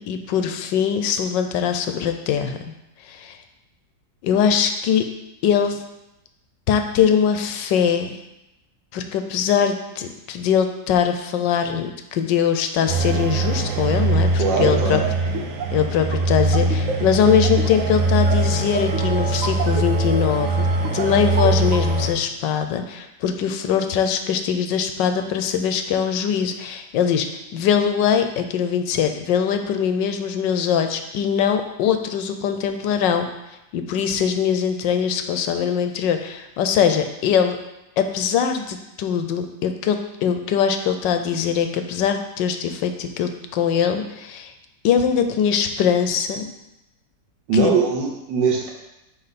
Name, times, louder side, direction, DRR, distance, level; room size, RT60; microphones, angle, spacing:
voice 1, 0.0-2.6 3.1-3.4 4.2-5.1 5.4-5.8 6.7-8.2 8.9-15.0 15.7-20.7 20.9-27.3 27.5-33.3 33.7-37.6 38.0-44.5 44.8-46.5 47.5-47.8, left 8 dB, 90° left, 7 dB, 1.3 m, -22 dB
sound 1, 12.9-22.1, right 2 dB, 60° right, 1.0 m, -21 dB
voice 2, 14.4-15.0 47.5-48.7, right 5 dB, 85° right, -2 dB, 1.6 m, -21 dB
9.9 x 3.4 x 4.1 m, 0.91 s
omnidirectional pair, 1.9 m